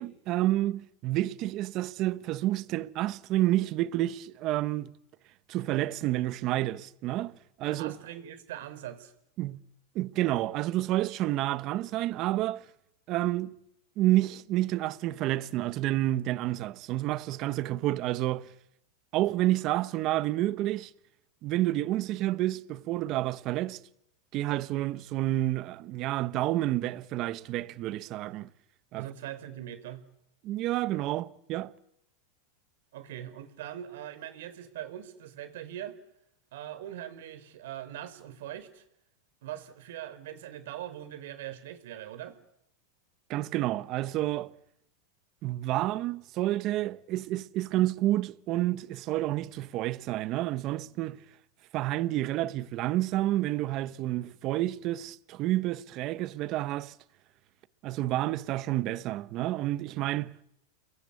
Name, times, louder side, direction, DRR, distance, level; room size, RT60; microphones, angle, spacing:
voice 1, 0.0-4.9 5.5-7.3 7.6-7.9 9.4-9.6 9.9-12.6 13.1-13.6 14.0-18.5 19.1-20.9 21.4-23.8 24.3-28.5 28.9-29.1 30.4-31.7 43.3-44.5 45.4-51.2 51.7-56.9 57.8-60.3, right 15 dB, 35° right, 1.1 m, -29 dB
voice 2, 7.7-9.1 29.0-30.0 32.9-36.0 36.5-38.8 39.4-42.4, right 11 dB, 70° right, 4.1 m, -41 dB
29.5 x 21.5 x 8.5 m
supercardioid pair, 155°, 0 cm